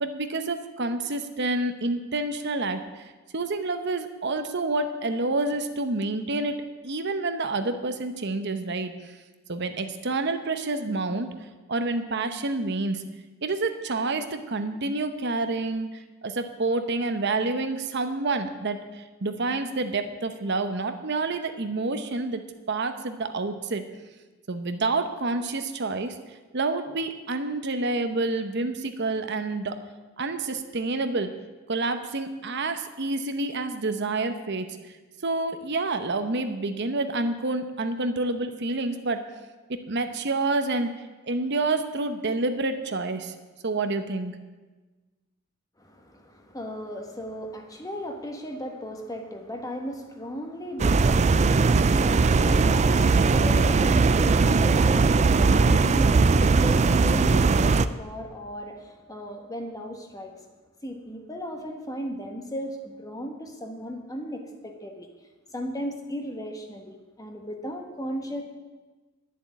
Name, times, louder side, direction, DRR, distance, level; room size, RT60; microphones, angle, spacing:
voice 1, 0.0-3.0 3.3-8.9 9.5-11.3 11.7-13.0 13.4-15.9 16.2-22.4 22.7-23.8 24.5-26.2 26.5-29.7 30.2-31.3 31.7-34.7 35.2-39.2 39.9-41.0 41.2-43.3 43.6-44.3, right 3 dB, 60° right, 8 dB, 0.9 m, -28 dB
voice 2, 45.8-60.4 60.8-65.1 65.5-68.4, equal, 15° left, 3 dB, 1.2 m, -36 dB
sound 1, 50.8-57.9, right 4 dB, 35° right, 0.4 m, -20 dB
10.5 x 7.4 x 9.5 m, 1.2 s
head